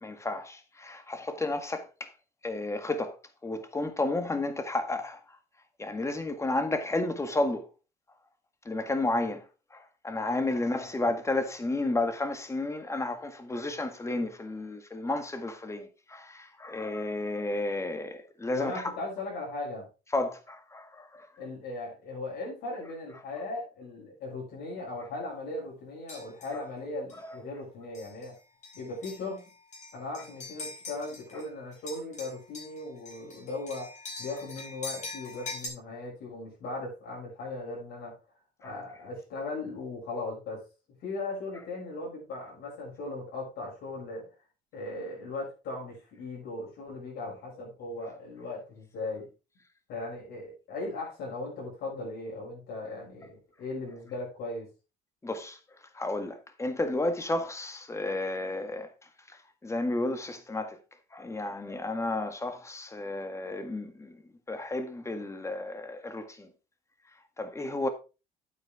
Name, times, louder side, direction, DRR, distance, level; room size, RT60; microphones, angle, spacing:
voice 1, 0.0-2.1 2.4-3.1 3.4-5.2 5.8-7.6 8.6-9.4 9.7-18.9 20.1-21.3 27.2-27.3 38.6-38.7 55.2-55.6 55.9-58.9 59.6-60.8 61.1-64.2 64.5-66.5 67.4-67.9, left 2 dB, 15° left, 1.7 m, -32 dB
voice 2, 10.5-10.9 18.5-19.9 21.4-28.4 28.7-29.4 29.9-33.9 34.2-38.1 38.6-40.6 41.0-44.3 44.7-49.3 49.9-54.7, left 2 dB, 75° left, 6.1 m, -38 dB
sound 1, 26.1-26.6 27.1-27.3 27.9-28.3 28.6-31.5 31.7-35.7, left 3 dB, 45° left, 4.4 m, -43 dB
9.0 x 8.6 x 3.6 m
cardioid pair, 110°, 17 cm